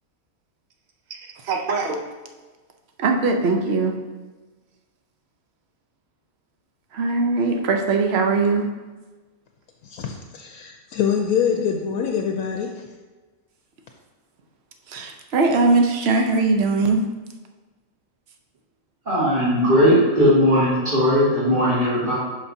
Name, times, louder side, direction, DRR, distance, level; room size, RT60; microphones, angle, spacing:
voice 1, 1.1-2.0 3.0-4.0 6.9-8.7 14.9-17.0, right 3 dB, 50° right, 3 dB, 0.9 m, -21 dB
voice 2, 9.8-12.8, left 7 dB, 75° left, 3 dB, 1.1 m, -25 dB
voice 3, 19.1-22.1, equal, 35° right, -11 dB, 2.3 m, -18 dB
11.5 x 4.9 x 2.8 m, 1.3 s
omnidirectional pair, 1.6 m